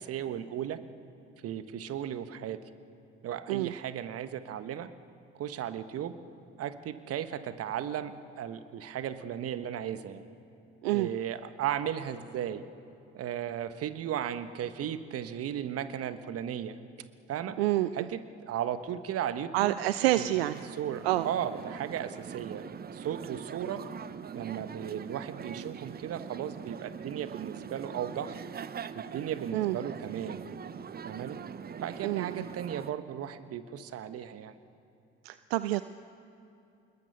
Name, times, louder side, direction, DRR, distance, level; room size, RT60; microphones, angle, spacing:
voice 1, 0.1-0.8 1.4-2.6 3.2-4.9 5.3-6.1 6.6-10.3 10.9-12.7 13.1-16.8 17.3-17.6 17.9-18.2 18.5-19.8 20.1-20.4 20.8-22.6 22.9-23.8 24.3-28.4 28.9-30.4 31.0-31.4 31.8-34.5, right 10 dB, 50° right, 11 dB, 1.3 m, -35 dB
voice 2, 17.6-18.1 19.5-20.6 21.0-21.3 29.5-29.8 32.0-32.4 35.2-35.8, right 16 dB, 75° right, 14 dB, 0.5 m, -28 dB
sound 1, 20.0-32.9, right 7 dB, 30° right, 0.9 m, -42 dB
27.0 x 21.0 x 6.8 m, 2.7 s
hypercardioid pair, 60°, 31 cm